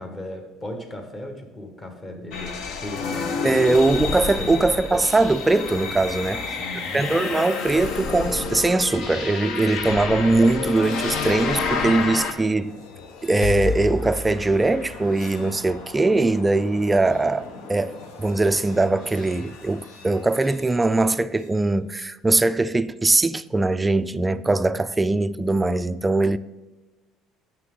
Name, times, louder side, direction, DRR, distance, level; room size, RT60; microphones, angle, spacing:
voice 1, 0.0-3.8 4.4-4.5 6.2-7.0, left 1 dB, 25° left, 1.6 m, -36 dB
sound 1, 2.3-12.3, left 4 dB, 60° left, 1.0 m, -29 dB
voice 2, 3.4-6.4 6.9-12.7 13.2-26.4, right 2 dB, 15° right, 0.3 m, -21 dB
sound 2, 8.8-21.6, left 4 dB, 80° left, 1.2 m, -38 dB
9.6 x 7.1 x 3.8 m
cardioid pair, 125°, 0 cm